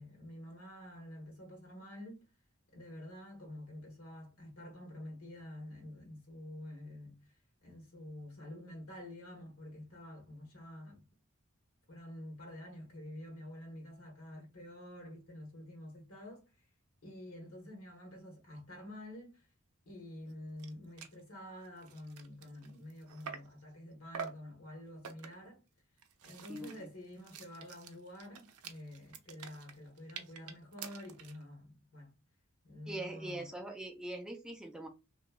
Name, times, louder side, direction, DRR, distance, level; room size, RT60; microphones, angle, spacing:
voice 1, 0.0-2.3 2.7-7.3 7.6-11.1 11.9-16.4 17.0-19.5 19.9-25.6 26.2-32.1 32.6-33.5, left 1 dB, 80° left, 1.3 m, -48 dB
sound 1, 20.3-20.4 20.6-20.7 21.0-21.2 21.6-23.6 24.1-24.5 25.0-25.5 26.0-31.4, right 7 dB, 80° right, 0.5 m, -48 dB
voice 2, 26.5-26.9 32.9-34.9, right 1 dB, 5° right, 0.3 m, -42 dB
2.9 x 2.2 x 2.3 m
head